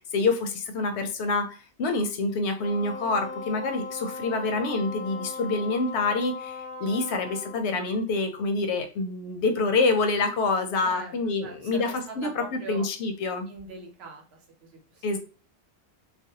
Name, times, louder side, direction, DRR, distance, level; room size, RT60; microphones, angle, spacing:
voice 1, 0.1-13.5 15.0-15.2, left 3 dB, 85° left, 6 dB, 0.9 m, -27 dB
Wind instrument woodwind instrument, 2.6-7.7, left 3 dB, 55° left, 0.6 m, -38 dB
voice 2, 11.4-12.9 13.5-15.2, right 4 dB, 75° right, 0 dB, 1.0 m, -42 dB
2.5 x 2.0 x 2.7 m, 0.36 s
omnidirectional pair, 1.1 m